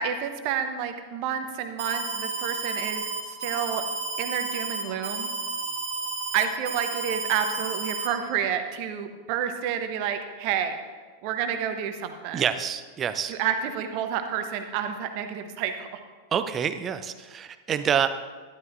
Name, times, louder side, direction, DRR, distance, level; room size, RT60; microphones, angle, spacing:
voice 1, 0.0-3.1 3.4-3.8 4.2-5.3 6.3-10.8 11.2-12.4 13.3-16.0, right 8 dB, 45° right, 7 dB, 0.9 m, -29 dB
Alarm, 1.8-8.1, right 4 dB, 65° right, 1.8 m, -32 dB
voice 2, 12.3-13.3 16.3-18.1, right 8 dB, 25° right, 11 dB, 0.5 m, -27 dB
12.0 x 11.5 x 2.6 m, 1.4 s
figure-of-eight pair, 90°, 0 cm